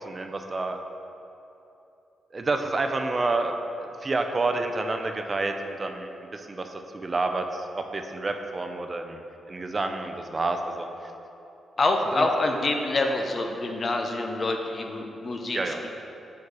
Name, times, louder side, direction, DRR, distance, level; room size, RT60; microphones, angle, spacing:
voice 1, 0.0-0.8 2.3-3.5 3.8-9.2 9.5-10.9 12.1-12.3 15.5-15.8, right 3 dB, 35° right, 5 dB, 0.4 m, -29 dB
voice 2, 11.8-15.9, left 2 dB, 45° left, 3 dB, 0.6 m, -26 dB
4.7 x 4.6 x 4.7 m, 2.9 s
cardioid pair, 75°, 0 cm